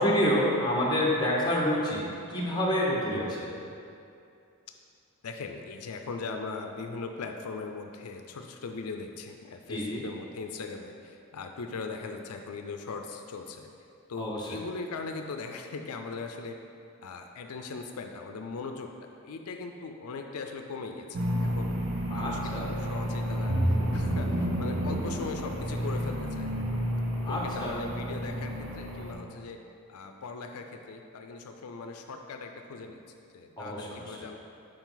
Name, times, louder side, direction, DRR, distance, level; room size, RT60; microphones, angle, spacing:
voice 1, 0.0-3.2 9.7-10.0 14.2-14.6 22.1-22.7 27.2-27.8 33.6-34.2, equal, 20° left, -4 dB, 1.0 m, -28 dB
voice 2, 5.2-13.7 14.1-16.6 17.0-18.9 19.2-23.5 23.9-26.9 27.3-29.6 29.9-33.0 33.3-34.4, left 4 dB, 90° left, 4 dB, 0.5 m, -39 dB
sound 1, 21.1-29.1, equal, 65° right, 0.9 m, -30 dB
7.2 x 4.9 x 3.9 m, 2.5 s
head